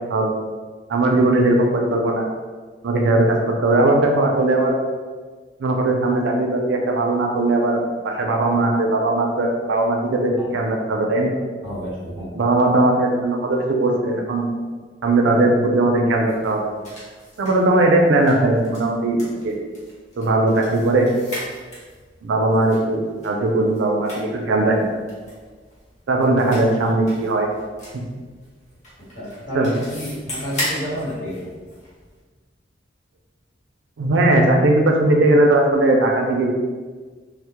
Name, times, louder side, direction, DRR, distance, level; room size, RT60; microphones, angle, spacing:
voice 1, 0.9-2.2 2.8-3.4 3.6-4.7 5.6-11.3 12.3-14.5 15.0-16.7 17.4-19.5 20.2-21.1 22.2-24.8 26.1-27.5 29.5-29.7 34.0-36.5, right 2 dB, 75° right, 1 dB, 0.4 m, -18 dB
voice 2, 11.6-12.3 29.0-31.5, equal, 75° left, -9 dB, 1.2 m, -30 dB
sound 1, 16.1-32.2, left 1 dB, 40° left, 0.8 m, -38 dB
2.1 x 2.0 x 2.8 m, 1.4 s
head